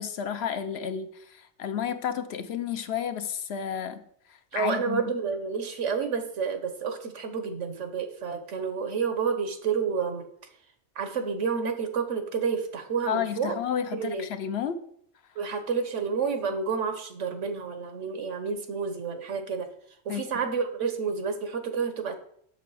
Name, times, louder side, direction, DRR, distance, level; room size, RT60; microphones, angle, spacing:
voice 1, 0.0-4.0 4.3-5.0 13.1-14.8 20.1-20.4, left 8 dB, 65° left, 9 dB, 0.9 m, -31 dB
voice 2, 4.5-10.3 10.9-13.6 13.9-14.3 15.3-19.7 20.0-22.1, right 6 dB, 90° right, 7 dB, 1.4 m, -30 dB
7.6 x 6.7 x 4.8 m, 0.66 s
omnidirectional pair, 1.2 m